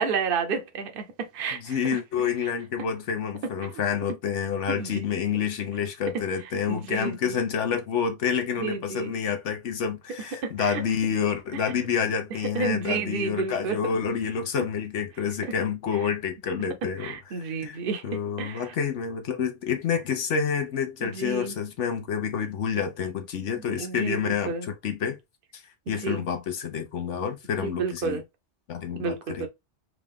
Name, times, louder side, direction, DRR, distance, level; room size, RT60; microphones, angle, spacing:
voice 1, 0.0-2.0 4.7-5.0 6.1-6.2 6.7-7.4 8.6-9.1 10.4-10.8 11.5-11.8 12.5-13.8 14.6-14.7 16.8-18.7 21.0-21.5 22.3-22.4 23.6-24.7 26.0-26.2 27.6-28.2 29.0-29.5, right 5 dB, 55° right, 0.9 m, -31 dB
voice 2, 1.5-25.2 25.5-25.6 25.9-28.2 28.7-29.5, left 7 dB, 80° left, 1.1 m, -28 dB
3.7 x 2.4 x 3.4 m
omnidirectional pair, 1.2 m